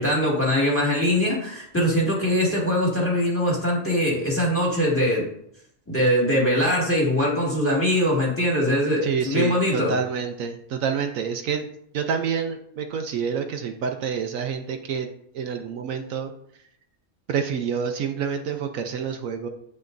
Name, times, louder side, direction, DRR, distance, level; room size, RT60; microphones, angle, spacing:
voice 1, 0.0-5.3 5.9-9.9, equal, 10° left, -4 dB, 1.9 m, -22 dB
voice 2, 9.0-11.6 11.9-15.1 15.3-16.3 17.3-19.5, right 6 dB, 75° right, 5 dB, 1.0 m, -28 dB
8.0 x 5.8 x 2.6 m, 0.72 s
omnidirectional pair, 1.5 m